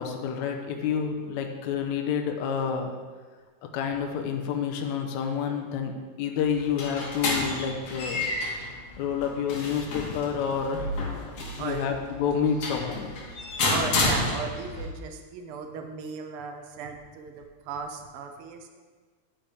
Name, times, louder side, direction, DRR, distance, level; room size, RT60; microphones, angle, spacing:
voice 1, 0.0-2.9 3.6-8.3 9.0-10.9 11.6-13.1, left 7 dB, 75° left, 3 dB, 2.1 m, -29 dB
sound 1, 6.4-14.9, left 2 dB, 55° left, 2.5 m, -31 dB
voice 2, 11.6-11.9 13.7-18.7, right 5 dB, 85° right, 5 dB, 1.2 m, -36 dB
10.0 x 9.8 x 3.5 m, 1.5 s
omnidirectional pair, 3.5 m